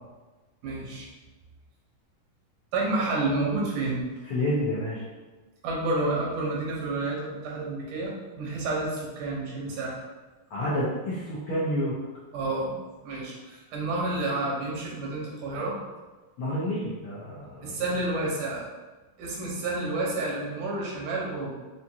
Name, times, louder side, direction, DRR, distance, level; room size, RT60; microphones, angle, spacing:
voice 1, 0.6-1.1 2.7-4.1 5.6-8.1 8.4-10.0 12.3-12.7 13.0-15.8 17.6-18.7 19.2-21.5, right 2 dB, 80° right, -3 dB, 2.4 m, -29 dB
voice 2, 4.2-5.0 10.5-12.0 16.4-17.8, left 1 dB, 80° left, -8 dB, 1.2 m, -29 dB
5.7 x 2.5 x 2.8 m, 1.2 s
omnidirectional pair, 3.6 m